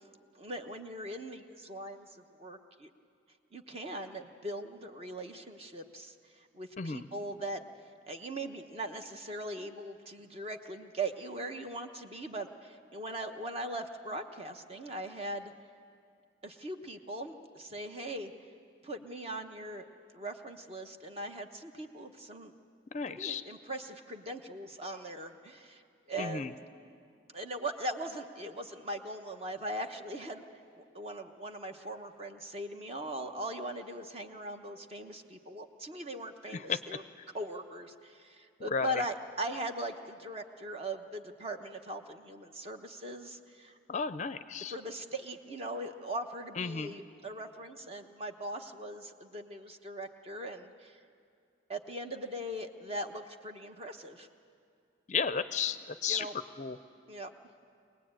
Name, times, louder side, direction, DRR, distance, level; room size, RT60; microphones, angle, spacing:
voice 1, 0.3-2.9 3.5-7.6 8.1-15.5 16.4-18.3 18.8-19.9 20.1-22.5 23.1-25.8 26.1-26.5 27.3-30.4 30.8-37.0 37.3-43.8 44.7-51.0 51.7-54.3 56.1-56.4 57.1-57.3, right 1 dB, 30° right, 5 dB, 1.0 m, -40 dB
voice 2, 22.9-23.4 26.2-26.5 36.5-36.8 38.7-39.0 43.9-44.7 46.6-46.9 55.1-56.3 56.6-56.8, left 5 dB, 40° left, 12 dB, 0.5 m, -33 dB
23.5 x 19.0 x 8.9 m, 2.3 s
head